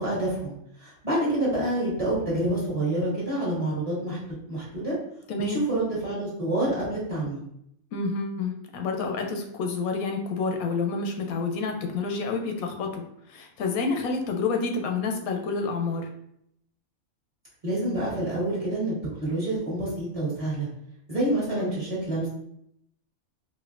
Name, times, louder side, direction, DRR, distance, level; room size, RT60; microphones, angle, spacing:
voice 1, 0.0-4.2 4.5-5.0 5.4-7.4 17.6-18.9 19.2-20.7 21.1-22.3, right 1 dB, 25° right, -8 dB, 1.1 m, -27 dB
voice 2, 5.3-5.6 7.9-16.1 21.6-21.7, left 4 dB, 85° left, 3 dB, 1.0 m, -29 dB
4.2 x 2.5 x 2.4 m, 0.75 s
omnidirectional pair, 1.5 m